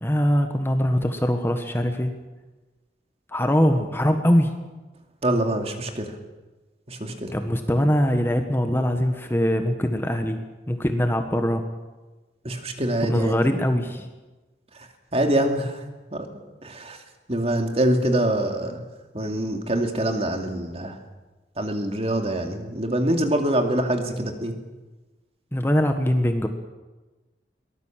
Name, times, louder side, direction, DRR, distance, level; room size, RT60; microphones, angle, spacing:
voice 1, 0.0-2.1 3.3-4.5 7.3-10.4 10.7-11.6 13.0-14.1 25.5-26.5, equal, 15° left, 6 dB, 1.4 m, -22 dB
voice 2, 5.2-6.1 6.9-7.3 12.4-13.3 15.1-15.8 16.1-16.3 16.6-17.0 17.3-18.8 19.1-21.0 21.6-24.6, right 1 dB, 35° right, 4 dB, 2.5 m, -24 dB
23.0 x 18.5 x 7.5 m, 1.2 s
head